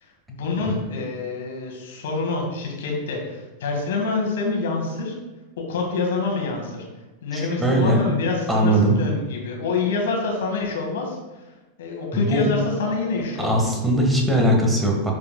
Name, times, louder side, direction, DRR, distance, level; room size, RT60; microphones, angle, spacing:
voice 1, 0.3-5.2 5.6-6.8 7.2-11.4 11.8-13.8, left 4 dB, 60° left, 0 dB, 1.7 m, -26 dB
voice 2, 7.3-8.0 8.5-9.0 12.1-12.5 13.4-15.1, right 1 dB, 10° right, 0 dB, 1.4 m, -20 dB
10.5 x 4.8 x 2.2 m, 1.1 s
figure-of-eight pair, 90°, 0 cm